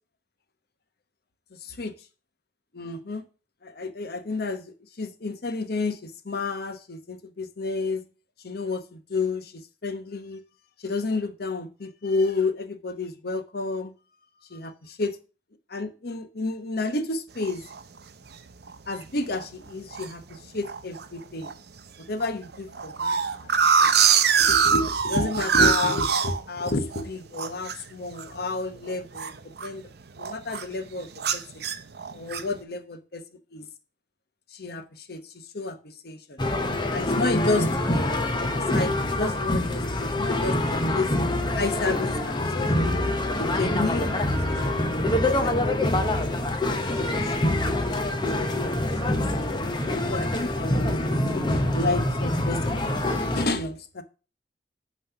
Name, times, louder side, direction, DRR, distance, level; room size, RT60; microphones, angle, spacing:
voice 1, 1.6-1.9 2.7-3.2 3.6-8.0 8.4-10.4 10.8-13.9 14.5-15.2 15.7-17.6 18.9-21.5 22.1-23.2 23.8-23.9 24.4-29.9 30.2-31.7 32.1-33.2 33.5-33.7 34.5-36.4 36.9-41.1 41.6-42.9 43.4-46.5 47.0-47.9 48.4-49.2 50.1-51.0 51.3-52.8 53.3-54.0, left 3 dB, 60° left, 0.9 m, -31 dB
sound 1, 17.4-17.8 18.3-18.4 18.7-19.0 19.4-20.1 20.6-21.1 21.4-21.5 21.8-21.9 22.2-27.0 27.3-29.9 30.2-30.7 31.2-32.6, right 6 dB, 65° right, 0.7 m, -23 dB
sound 2, 36.4-53.5, left 1 dB, 25° left, 0.9 m, -25 dB
9.3 x 3.2 x 6.8 m
head